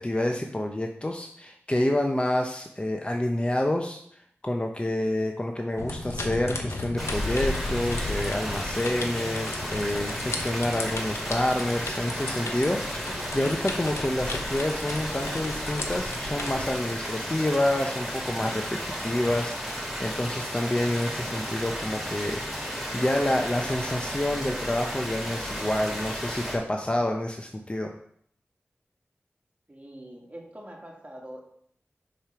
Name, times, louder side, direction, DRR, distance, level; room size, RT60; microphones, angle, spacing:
voice 1, 0.0-4.0 4.4-13.0 13.3-27.9, left 1 dB, 25° left, 3 dB, 0.7 m, -28 dB
sound 1, 5.8-16.7, left 2 dB, 85° left, 0.8 m, -35 dB
sound 2, 7.0-26.5, equal, ahead, 2.8 m, -34 dB
voice 2, 29.7-31.4, right 1 dB, 30° right, -2 dB, 2.0 m, -44 dB
5.1 x 4.5 x 5.8 m, 0.65 s
wide cardioid pair, 45°, 5 cm